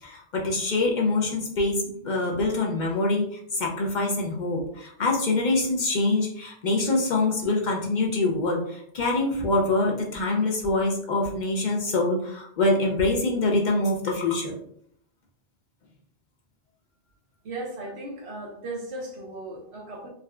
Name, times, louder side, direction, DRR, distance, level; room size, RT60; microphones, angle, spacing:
voice 1, 0.0-14.5, left 2 dB, 55° left, 0 dB, 0.6 m, -25 dB
voice 2, 17.4-20.1, right 2 dB, 85° right, 0 dB, 1.0 m, -36 dB
3.6 x 2.2 x 2.2 m, 0.69 s
omnidirectional pair, 1.1 m